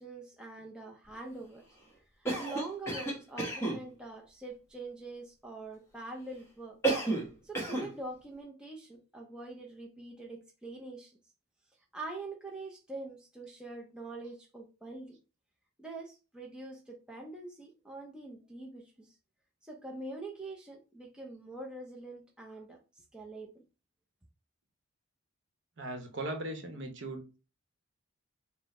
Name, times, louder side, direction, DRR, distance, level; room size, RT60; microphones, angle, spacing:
voice 1, 0.0-1.6 2.2-6.8 7.4-11.2 11.9-15.2 15.8-19.1 19.6-23.6, right 2 dB, 5° right, 0.5 m, -44 dB
Cough, 2.2-3.8 6.8-7.3 7.5-7.9, right 2 dB, 15° left, 1.0 m, -31 dB
voice 2, 25.8-27.4, right 1 dB, 60° right, 0.9 m, -38 dB
4.3 x 2.1 x 4.1 m
head